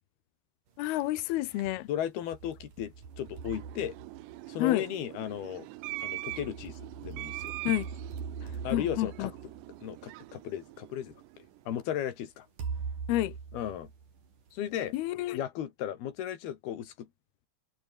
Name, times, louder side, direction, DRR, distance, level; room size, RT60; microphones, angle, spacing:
voice 1, 0.8-1.9 4.6-4.9 7.7-7.9 8.7-9.3 13.1-13.4 14.9-15.4, left 16 dB, 75° left, 2.4 m, -29 dB
sound 1, 0.8-1.8 2.3-4.7 5.9-10.3 11.1-11.2 12.6-14.5, right 6 dB, 45° right, 5.4 m, -42 dB
voice 2, 1.9-4.0 4.5-5.7 6.0-7.5 8.6-9.3 9.8-11.2 11.7-12.5 13.5-13.9 14.5-14.9 15.3-17.1, left 10 dB, 60° left, 3.9 m, -35 dB
sound 2, 3.1-11.6, right 20 dB, 80° right, 2.7 m, -43 dB
omnidirectional pair, 5.6 m